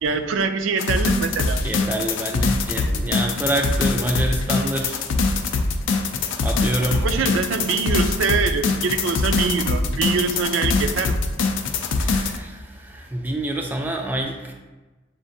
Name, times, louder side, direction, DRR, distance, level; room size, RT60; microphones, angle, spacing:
voice 1, 0.0-1.6 7.0-11.2, right 5 dB, 80° right, 7 dB, 0.4 m, -24 dB
sound 1, 0.8-12.4, left 3 dB, 75° left, 0.4 m, -23 dB
voice 2, 1.6-5.0 6.4-7.1 11.9-14.5, right 1 dB, 10° right, 1 dB, 0.3 m, -27 dB
7.3 x 2.5 x 2.6 m, 1.2 s
head